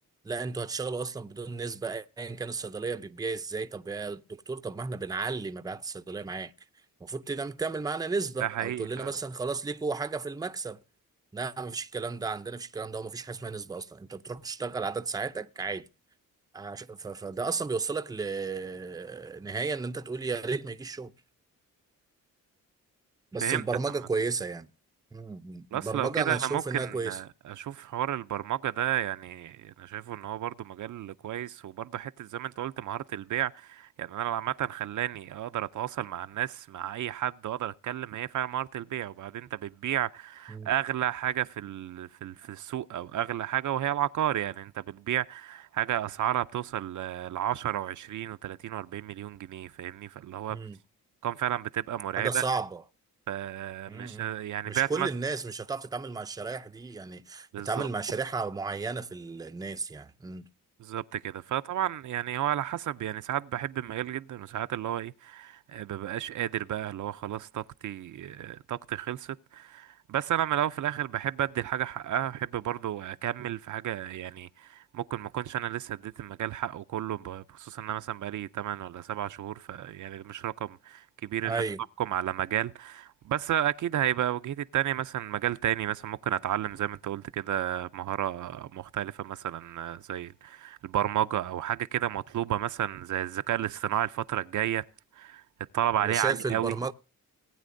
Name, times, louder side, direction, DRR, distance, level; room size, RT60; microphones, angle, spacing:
voice 1, 0.2-6.5 7.0-10.8 11.3-15.9 16.5-21.1 23.3-24.7 25.1-27.2 40.5-40.7 50.5-50.8 52.2-52.8 53.9-54.3 54.7-60.4 81.4-81.8 96.0-96.9, right 4 dB, 10° right, 0.5 m, -33 dB
voice 2, 8.4-9.1 23.4-23.6 25.7-50.6 51.2-52.4 53.3-55.1 57.5-57.9 60.8-81.6 82.0-94.8 95.2-95.4 95.7-96.7, right 11 dB, 60° right, 0.5 m, -32 dB
19.0 x 9.1 x 2.6 m
cardioid pair, 120°, 34 cm